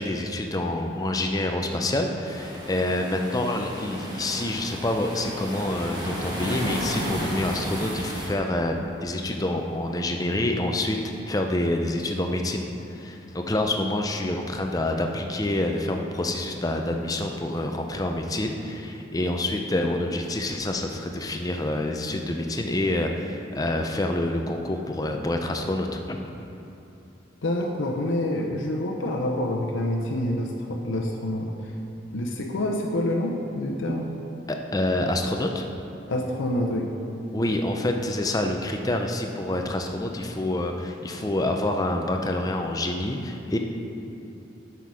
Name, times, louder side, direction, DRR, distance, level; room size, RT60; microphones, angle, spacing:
voice 1, 0.0-11.0 11.3-12.7 12.9-26.2 34.5-35.7 37.3-43.6, left 1 dB, 20° left, 3 dB, 0.5 m, -27 dB
sound 1, 2.3-8.3, equal, 20° right, 1.3 m, -33 dB
voice 2, 27.4-31.5 32.1-34.1 36.1-36.9, left 1 dB, 80° left, 0 dB, 0.7 m, -27 dB
8.0 x 5.8 x 4.8 m, 2.8 s
head